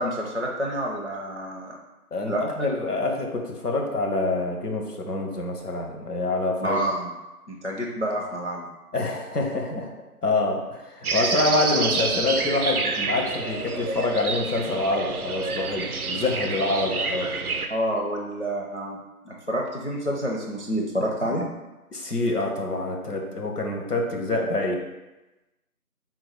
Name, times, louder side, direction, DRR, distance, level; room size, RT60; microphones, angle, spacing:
voice 1, 0.0-1.8 2.2-2.4 6.6-7.1 7.5-8.7 17.7-19.0 19.2-21.5, equal, 50° left, -2 dB, 0.5 m, -28 dB
voice 2, 2.1-6.8 8.9-9.9 10.2-17.3 21.9-24.8, left 2 dB, 85° left, 1 dB, 1.0 m, -26 dB
sound 1, 11.0-17.7, right 4 dB, 75° right, 0.5 m, -28 dB
3.7 x 2.3 x 4.5 m, 1.0 s
figure-of-eight pair, 180°, 45 cm